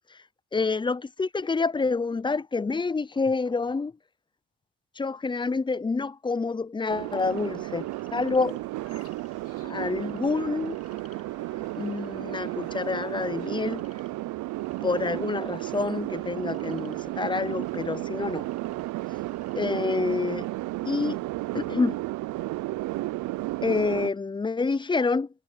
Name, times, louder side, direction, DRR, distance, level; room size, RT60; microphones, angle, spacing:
voice 1, 0.5-3.9 5.0-8.6 9.6-10.8 11.8-13.9 14.8-18.5 19.5-20.5 20.8-21.2 21.5-22.0 23.6-25.3, left 4 dB, 15° left, 0.5 m, -28 dB
sound 1, 6.9-24.1, right 18 dB, 80° right, 0.5 m, -33 dB
sound 2, 7.0-20.5, left 7 dB, 50° left, 7.7 m, -62 dB
Bowed string instrument, 10.2-14.2, left 10 dB, 75° left, 3.3 m, -57 dB
cardioid pair, 90°, 30 cm